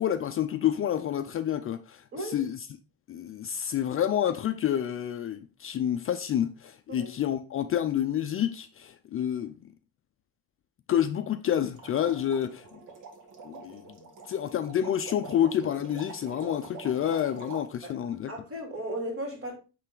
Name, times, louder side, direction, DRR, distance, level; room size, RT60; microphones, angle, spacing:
voice 1, 0.0-2.7 3.1-9.7 10.9-12.8 13.4-13.8 14.3-18.3, left 10 dB, 40° left, 0.4 m, -29 dB
sound 1, 11.8-17.6, right 4 dB, 60° right, 1.5 m, -45 dB
voice 2, 18.3-19.6, right 1 dB, 40° right, 3.0 m, -35 dB
8.8 x 3.4 x 3.7 m
cardioid pair, 135°, 34 cm